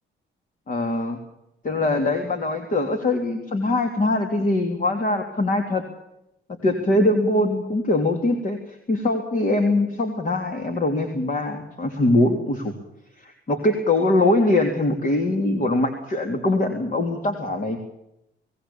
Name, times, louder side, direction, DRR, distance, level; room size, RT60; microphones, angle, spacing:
voice 1, 0.7-1.2 1.6-5.8 6.6-8.6 8.9-12.7 13.2-17.8, left 2 dB, 40° left, 5 dB, 3.3 m, -22 dB
25.0 x 18.5 x 7.1 m, 0.85 s
cardioid pair, 90°, 20 cm